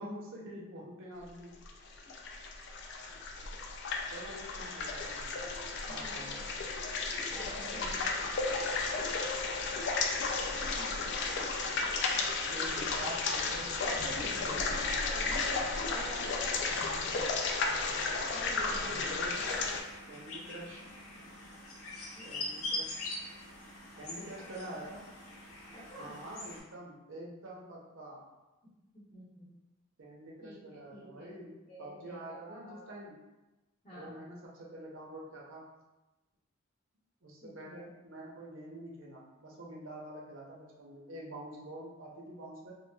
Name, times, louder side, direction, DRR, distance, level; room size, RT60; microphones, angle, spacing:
voice 1, 0.0-1.5 4.1-5.5 5.9-6.5 12.4-13.7 14.3-15.0 18.8-19.6 20.1-20.8 22.3-23.1 24.0-25.0 26.0-28.2 30.0-31.5 31.8-33.2 33.9-35.6 37.2-42.7, right 1 dB, 65° right, -3 dB, 0.6 m, -46 dB
sound 1, 1.6-19.8, left 3 dB, 55° left, 0.3 m, -33 dB
voice 2, 5.9-6.3 7.1-8.4 10.5-11.1 13.8-14.7 15.1-17.1 18.2-19.5 22.1-22.3 25.7-26.2 28.9-29.5 30.4-32.8 33.8-34.2 37.4-37.9, equal, 30° left, -10 dB, 0.8 m, -48 dB
sound 2, 19.3-26.6, left 2 dB, 90° left, 0.7 m, -43 dB
3.0 x 2.4 x 2.2 m, 1.1 s
head